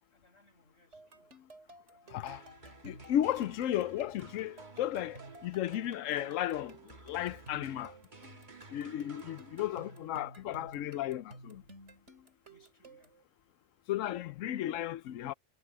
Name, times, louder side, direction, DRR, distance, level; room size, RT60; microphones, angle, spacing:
voice 1, 0.1-1.3 1.9-2.5 12.5-13.2, left 1 dB, 60° left, 6.7 m, -67 dB
sound 1, 0.9-13.2, right 1 dB, 65° right, 3.4 m, -55 dB
sound 2, 2.3-10.4, right 3 dB, 40° right, 1.9 m, -54 dB
voice 2, 2.8-6.7 7.1-7.9 8.7-11.6 13.9-15.3, left 12 dB, 85° left, 1.0 m, -34 dB
omnidirectional pair, 1.3 m